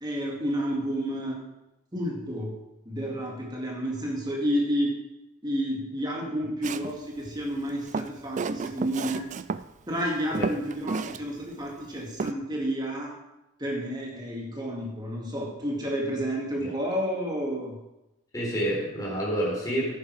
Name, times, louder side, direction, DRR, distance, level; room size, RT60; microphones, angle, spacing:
voice 1, 0.0-1.3 1.9-2.6 2.9-4.9 5.4-9.2 9.9-13.1 13.6-17.8, equal, 20° right, -1 dB, 2.4 m, -30 dB
Walk footsteps, 6.6-7.0 7.7-9.6 10.0-10.1 10.3-11.2 11.5-11.6 12.2-12.3, right 5 dB, 35° right, 0.3 m, -31 dB
voice 2, 18.3-19.9, right 1 dB, 15° left, -4 dB, 4.2 m, -28 dB
11.0 x 9.3 x 4.9 m, 0.94 s
head